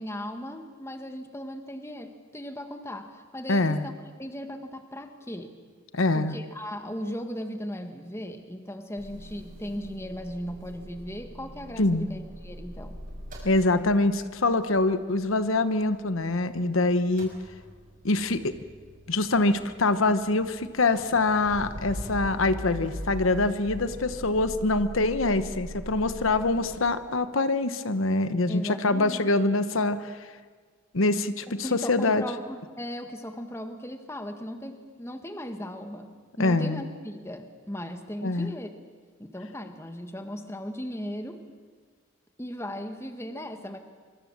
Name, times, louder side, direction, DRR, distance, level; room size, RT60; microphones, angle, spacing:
voice 1, 0.0-3.9 4.2-5.5 6.1-13.0 28.5-29.2 31.6-38.7 39.2-41.4 42.4-43.8, equal, 15° left, 7 dB, 1.6 m, -37 dB
voice 2, 3.5-3.9 5.9-6.3 11.8-12.1 13.4-17.3 18.0-18.5 19.1-30.1 30.9-32.2 36.4-36.8 38.2-38.5, left 2 dB, 80° left, 11 dB, 1.1 m, -24 dB
Motor vehicle (road) / Engine starting / Idling, 9.0-16.7 16.9-26.8, equal, 40° right, 6.5 m, -42 dB
25.0 x 24.0 x 7.5 m, 1.5 s
head